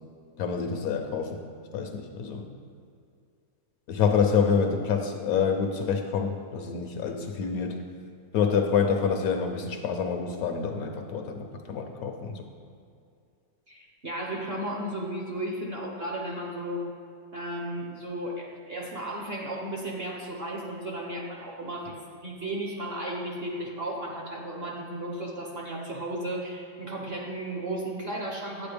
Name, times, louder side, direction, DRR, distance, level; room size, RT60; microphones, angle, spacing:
voice 1, 0.4-1.4 1.7-2.5 3.9-7.8 8.3-12.5, left 6 dB, 70° left, 4 dB, 1.0 m, -27 dB
voice 2, 13.7-16.9 17.3-28.7, right 1 dB, 45° right, -1 dB, 0.9 m, -34 dB
8.7 x 8.6 x 3.3 m, 2.4 s
omnidirectional pair, 1.8 m